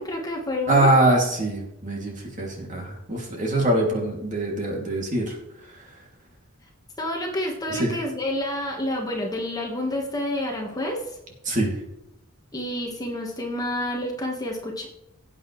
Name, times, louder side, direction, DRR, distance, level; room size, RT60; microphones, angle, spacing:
voice 1, 0.0-0.9 7.0-11.2 12.5-14.9, left 1 dB, 20° left, 0 dB, 1.6 m, -29 dB
voice 2, 0.7-5.4 7.7-7.9 11.4-11.7, right 1 dB, 35° right, -1 dB, 2.8 m, -23 dB
17.5 x 8.2 x 3.3 m, 0.87 s
head